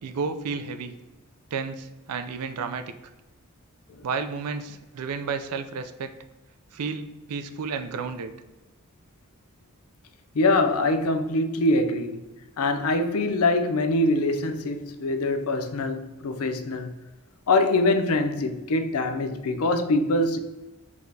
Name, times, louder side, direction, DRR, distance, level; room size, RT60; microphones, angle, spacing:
voice 1, 0.0-1.0 1.5-2.9 4.0-6.1 6.7-8.3, right 5 dB, 90° right, 0.4 m, -32 dB
voice 2, 10.3-12.2 12.6-16.9 17.5-20.4, left 2 dB, 70° left, 0.5 m, -24 dB
4.8 x 4.1 x 2.7 m
head